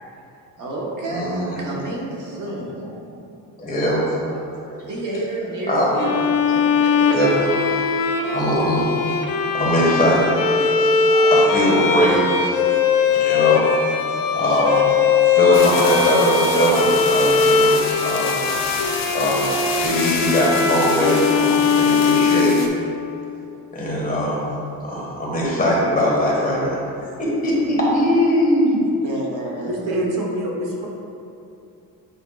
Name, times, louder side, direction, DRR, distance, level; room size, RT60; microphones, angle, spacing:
voice 1, 0.6-3.2 4.9-7.2 29.0-29.8, right 1 dB, 55° right, -3 dB, 1.2 m, -30 dB
voice 2, 1.1-1.6 3.6-4.9 5.7-5.9 7.1-7.8 8.3-8.8 9.5-12.6 13.1-13.8 14.1-18.3 19.1-19.5 19.7-22.5 23.7-24.4 24.8-26.8 27.2-28.8, equal, 20° left, -5 dB, 1.5 m, -21 dB
Bowed string instrument, 6.0-23.2, left 5 dB, 65° left, 0.5 m, -20 dB
sound 1, 15.5-22.7, left 4 dB, 45° left, 0.9 m, -29 dB
voice 3, 29.6-30.9, right 1 dB, 80° right, -2 dB, 1.2 m, -25 dB
8.1 x 5.2 x 2.4 m, 2.7 s
cardioid pair, 130°, 38 cm